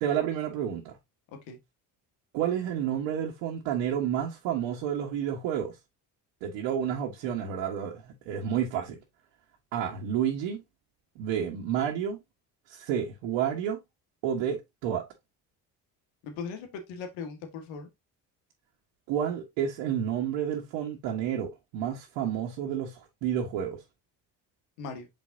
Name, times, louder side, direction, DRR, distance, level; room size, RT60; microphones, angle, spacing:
voice 1, 0.0-1.0 2.3-5.7 6.4-8.9 9.7-10.6 11.1-12.2 12.7-13.8 14.2-15.0 19.1-23.8, right 9 dB, 85° right, 1.6 m, -30 dB
voice 2, 16.2-17.9 24.8-25.1, left 5 dB, 85° left, 1.8 m, -39 dB
6.8 x 5.3 x 2.8 m
supercardioid pair, 70°, 45 cm